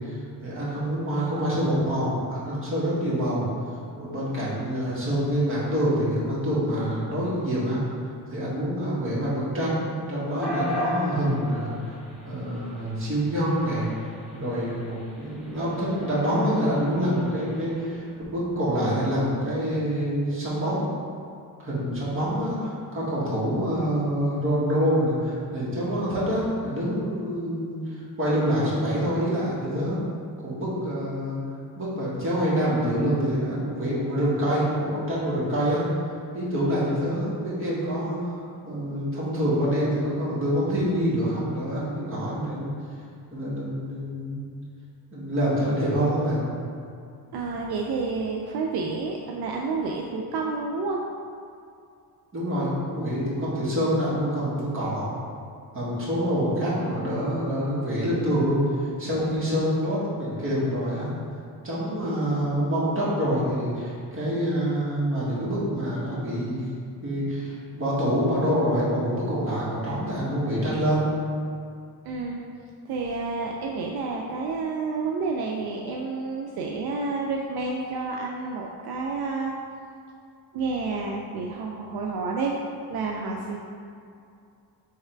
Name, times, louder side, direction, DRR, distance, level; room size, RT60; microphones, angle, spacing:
voice 1, 0.0-3.5 4.0-7.8 8.3-12.0 12.2-13.9 14.3-20.8 21.6-30.0 30.4-31.4 31.7-35.9 36.3-38.4 38.6-42.7 43.3-44.5 45.1-46.4 52.3-55.1 55.7-61.1 61.6-66.6 67.0-71.0, equal, 35° right, -8 dB, 1.4 m, -26 dB
sound 1, 10.4-18.0, left 1 dB, ahead, 0.8 m, -37 dB
voice 2, 47.3-51.0 72.0-72.4 72.9-79.6 80.5-82.5 82.9-83.6, right 4 dB, 75° right, -1 dB, 0.5 m, -29 dB
3.5 x 3.2 x 4.4 m, 2.4 s
cardioid pair, 130°, 38 cm